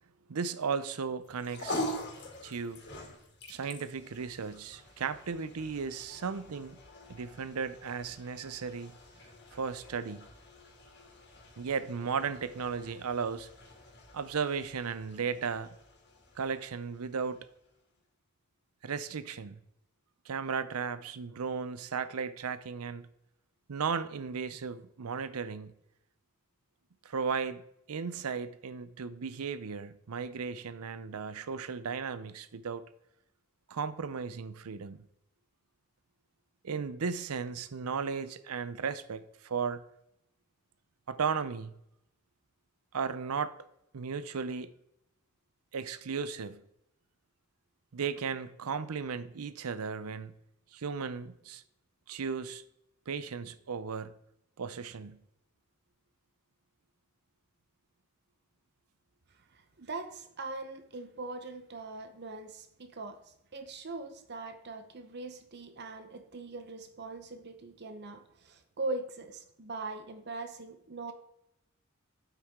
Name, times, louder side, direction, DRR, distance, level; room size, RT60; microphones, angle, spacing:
voice 1, 0.3-1.9 2.4-2.8 3.5-6.8 7.1-8.9 9.5-10.3 11.6-13.5 14.1-15.7 16.4-17.5 18.8-19.6 20.3-23.1 23.7-25.7 27.0-27.6 27.9-32.8 33.7-35.0 36.6-39.8 41.1-41.7 42.9-43.6 43.9-44.7 45.7-46.6 47.9-50.3 50.7-51.6 52.1-52.6 53.1-54.1 54.6-55.2, right 5 dB, 90° right, 0.6 m, -35 dB
sound 1, 1.2-17.7, left 1 dB, 50° left, 2.4 m, -45 dB
voice 2, 59.5-71.1, right 3 dB, 50° right, 0.8 m, -41 dB
9.1 x 8.0 x 3.7 m
head